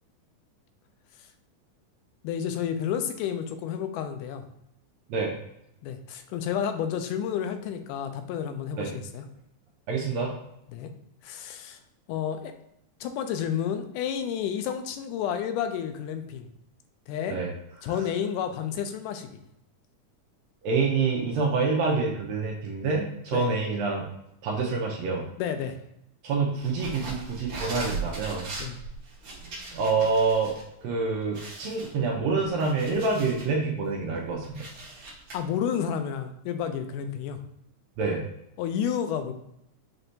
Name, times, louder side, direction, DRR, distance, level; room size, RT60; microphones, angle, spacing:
voice 1, 2.2-4.4 5.8-9.3 10.7-10.9 11.2-11.8 12.1-12.5 13.0-16.5 17.1-17.4 17.8-19.4 23.3-23.5 25.4-25.8 28.6-28.8 35.3-37.4 38.6-39.3, left 8 dB, 85° left, 7 dB, 2.1 m, -30 dB
voice 2, 9.9-10.3 17.3-17.5 20.6-24.1 24.4-25.3 26.2-28.5 29.7-30.5 30.8-34.6 38.0-38.2, right 4 dB, 75° right, -1 dB, 1.7 m, -27 dB
sound 1, 26.6-30.6 30.9-31.0 31.3-33.5 34.0-35.4, right 3 dB, 50° right, 1.7 m, -39 dB
5.9 x 3.2 x 2.7 m, 0.79 s
omnidirectional pair, 3.6 m